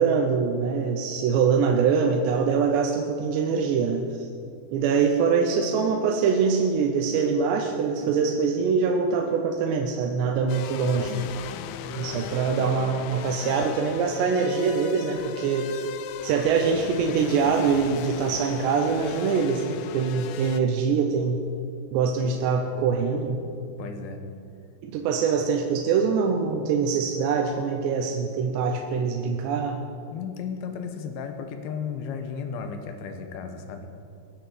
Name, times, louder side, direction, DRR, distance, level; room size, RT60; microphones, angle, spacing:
voice 1, 0.0-4.3 4.7-11.3 11.9-15.8 16.2-21.4 21.9-23.4 24.8-29.8, right 5 dB, 75° right, 2 dB, 3.0 m, -24 dB
sound 1, 10.5-20.6, left 9 dB, 85° left, 3.0 m, -37 dB
voice 2, 12.0-12.3 22.2-22.3 23.8-24.2 30.1-33.9, left 6 dB, 70° left, 6 dB, 2.6 m, -35 dB
22.5 x 7.8 x 6.6 m, 2.4 s
omnidirectional pair, 5.3 m